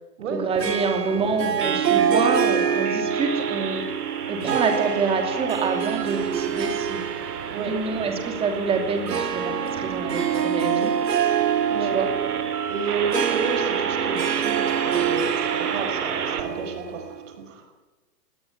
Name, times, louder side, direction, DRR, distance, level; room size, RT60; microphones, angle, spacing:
voice 1, 0.3-3.8 4.3-7.0 7.6-10.9 11.8-12.1, right 4 dB, 10° right, 5 dB, 2.8 m, -26 dB
Harp, 0.6-17.3, right 8 dB, 90° right, 2.5 m, -26 dB
sound 1, 1.6-16.4, right 7 dB, 65° right, 4.0 m, -32 dB
voice 2, 12.7-17.6, right 4 dB, 50° right, 6 dB, 5.8 m, -31 dB
22.0 x 18.0 x 9.7 m, 1.2 s
hypercardioid pair, 160°, 48 cm